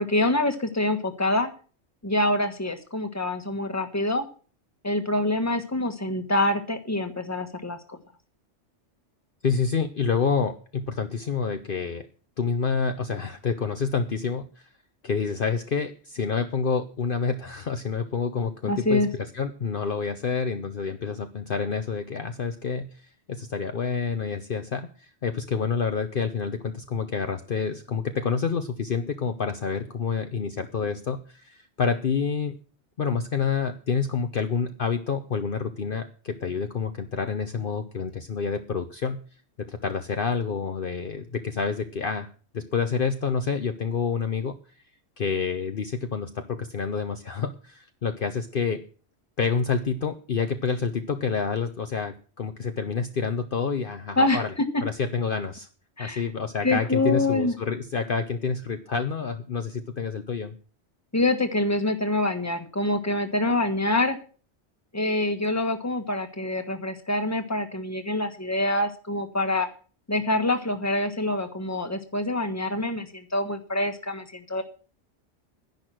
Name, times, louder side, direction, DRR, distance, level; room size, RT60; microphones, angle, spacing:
voice 1, 0.0-1.5 2.0-4.2 4.8-8.0 18.6-19.1 54.2-54.4 56.0-56.2 56.6-57.5 61.1-64.2 64.9-69.7 70.1-74.6, left 2 dB, 15° left, 7 dB, 1.4 m, -25 dB
voice 2, 9.4-12.0 12.4-14.7 15.0-22.9 23.3-32.6 33.0-39.2 39.6-42.3 42.5-44.5 45.2-48.8 49.4-54.5 54.8-55.7 56.0-60.5, left 5 dB, 50° left, 8 dB, 1.0 m, -28 dB
10.5 x 10.5 x 6.2 m, 0.40 s
omnidirectional pair, 1.2 m